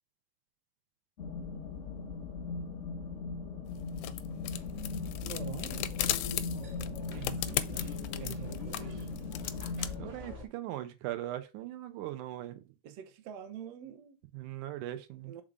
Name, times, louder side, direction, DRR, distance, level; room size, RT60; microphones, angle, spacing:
sound 1, 1.2-10.1, left 4 dB, 50° left, 0.8 m, -39 dB
sound 2, 3.7-10.0, left 14 dB, 80° left, 1.7 m, -38 dB
sound 3, 4.6-10.5, left 2 dB, 40° right, 1.0 m, -46 dB
voice 1, 5.2-6.0 7.1-9.1 12.8-14.2 15.2-15.4, right 10 dB, 65° right, 1.8 m, -46 dB
voice 2, 10.0-12.6 14.3-15.3, right 14 dB, 90° right, 2.2 m, -39 dB
5.3 x 3.7 x 4.8 m
omnidirectional pair, 3.5 m